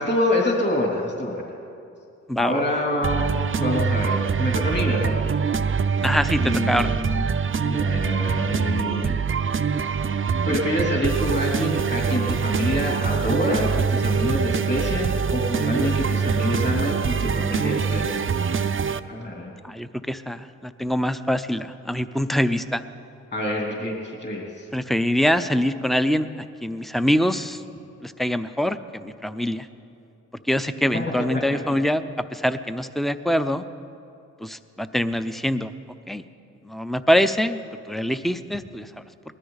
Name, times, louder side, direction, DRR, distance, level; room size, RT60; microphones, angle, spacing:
voice 1, 0.0-1.4 2.4-5.1 6.4-7.3 7.6-9.1 10.4-18.3 19.1-19.5 23.3-24.7 31.5-31.6, left 1 dB, 35° left, -2 dB, 3.2 m, -26 dB
voice 2, 2.3-2.6 6.0-6.9 19.6-22.8 24.7-26.3 26.6-27.6 28.0-29.7 30.5-32.0 32.3-33.6 34.4-35.7 36.1-36.2 36.6-37.6 37.9-38.9, equal, ahead, 11 dB, 0.6 m, -24 dB
sound 1, 3.0-19.0, right 6 dB, 40° right, 0.6 m, -24 dB
20.0 x 13.5 x 4.1 m, 2.6 s
cardioid pair, 50°, 32 cm